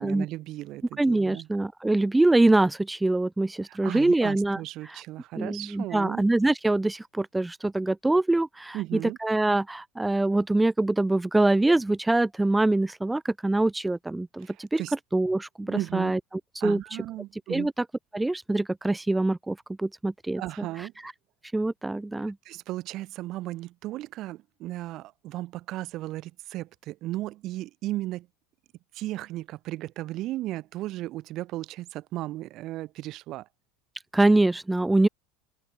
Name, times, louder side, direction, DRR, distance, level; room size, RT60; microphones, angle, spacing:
voice 1, 0.0-1.5 3.7-6.3 8.7-9.2 14.4-14.9 15.6-16.1 16.6-17.7 20.4-20.9 22.2-28.3 28.9-33.5, right 16 dB, 55° right, 1.6 m, -35 dB
voice 2, 1.0-5.0 5.4-14.8 15.1-16.2 16.5-16.8 17.5-17.7 18.1-20.7 21.5-22.3 34.1-35.1, right 2 dB, 10° right, 1.3 m, -24 dB
open air
hypercardioid pair, 85°, 0 cm